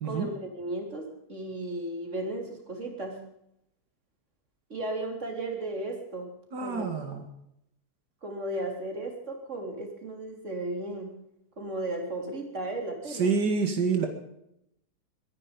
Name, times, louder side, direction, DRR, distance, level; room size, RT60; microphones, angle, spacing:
voice 1, 0.0-3.2 4.7-6.3 6.6-6.9 8.2-11.1 11.6-13.3, right 2 dB, 45° right, 3 dB, 3.9 m, -35 dB
voice 2, 6.5-7.2 13.1-14.1, right 5 dB, 90° right, 5 dB, 2.5 m, -27 dB
22.5 x 11.0 x 5.2 m, 0.78 s
omnidirectional pair, 1.7 m